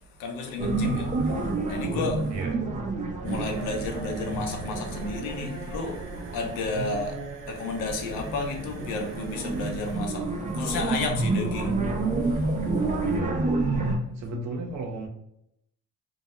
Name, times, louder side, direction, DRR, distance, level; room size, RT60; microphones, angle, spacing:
voice 1, 0.2-2.2 3.2-6.1 6.3-7.1 7.5-13.1, left 3 dB, 70° left, 2 dB, 0.7 m, -32 dB
sound 1, 0.6-7.2 7.6-14.0, right 3 dB, 25° right, 0.4 m, -29 dB
voice 2, 2.3-2.7 6.7-7.3 13.0-13.5 13.9-15.1, right 2 dB, 55° right, 2 dB, 0.7 m, -36 dB
sound 2, 3.0-5.8, right 1 dB, 25° left, 0.9 m, -44 dB
sound 3, 3.2-12.9, right 3 dB, 90° right, 0.7 m, -41 dB
2.2 x 2.1 x 2.9 m, 0.76 s
cardioid pair, 115°, 33 cm